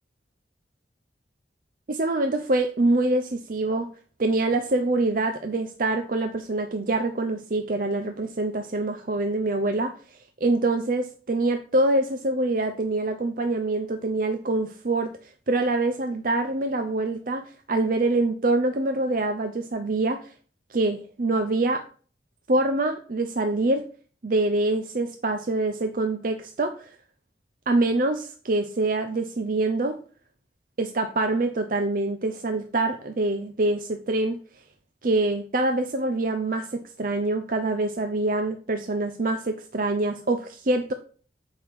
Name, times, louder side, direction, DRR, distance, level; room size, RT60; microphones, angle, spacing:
voice 1, 1.9-3.9 4.2-9.9 10.4-15.1 15.5-20.3 20.7-21.8 22.5-23.8 24.2-26.9 27.7-30.0 30.8-34.4 35.0-40.9, right 2 dB, 50° right, 7 dB, 0.6 m, -25 dB
7.9 x 5.5 x 4.7 m, 0.41 s
head